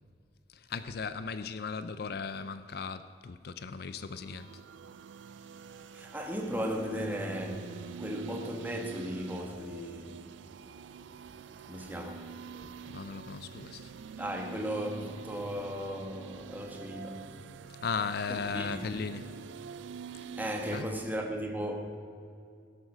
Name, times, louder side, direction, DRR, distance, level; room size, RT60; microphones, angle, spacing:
voice 1, 0.5-4.6 12.6-13.9 17.8-19.3 20.7-20.9, left 5 dB, 55° left, 0.4 m, -37 dB
sound 1, 3.9-20.8, right 6 dB, 80° right, 0.4 m, -46 dB
voice 2, 5.9-10.3 11.4-12.4 12.8-12.9 14.2-17.3 18.3-18.8 20.4-22.0, equal, 10° right, 1.2 m, -36 dB
17.0 x 7.9 x 6.3 m
head